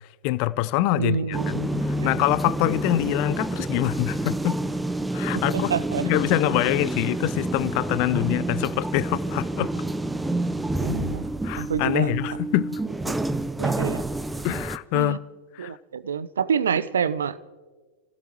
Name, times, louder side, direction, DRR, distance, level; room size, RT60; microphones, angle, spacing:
voice 1, 0.2-1.6 1.9-4.6 5.1-5.7 6.0-9.7 11.4-12.8 14.4-15.2 15.5-15.7, left 16 dB, 45° left, 0.6 m, -25 dB
voice 2, 1.0-2.1 5.3-6.1 10.8-11.3 11.6-12.3 13.1-13.2 13.6-14.0 14.9-15.2 15.6-17.4, right 7 dB, 65° right, 0.6 m, -28 dB
sound 1, 1.3-14.8, right 1 dB, 5° right, 0.5 m, -28 dB
29.5 x 16.0 x 3.1 m
figure-of-eight pair, 90°, 0 cm